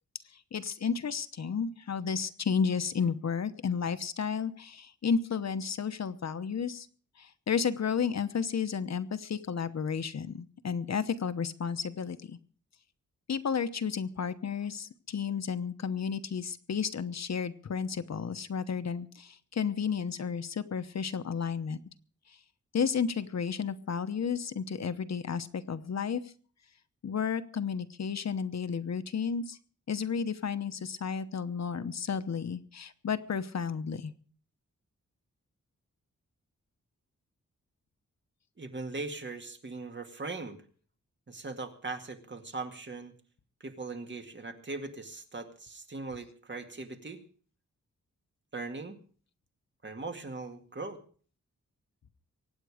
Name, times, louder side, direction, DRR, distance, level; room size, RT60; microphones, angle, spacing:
voice 1, 0.5-6.9 7.2-12.4 13.3-21.8 22.3-22.4 22.7-26.2 27.0-29.6 29.9-34.1, left 6 dB, 60° left, 12 dB, 1.0 m, -32 dB
voice 2, 38.6-40.6 41.3-43.1 43.6-47.2 48.5-49.0 49.8-51.0, right 3 dB, 40° right, 6 dB, 2.1 m, -40 dB
24.0 x 9.5 x 5.0 m, 0.43 s
wide cardioid pair, 105°, 30 cm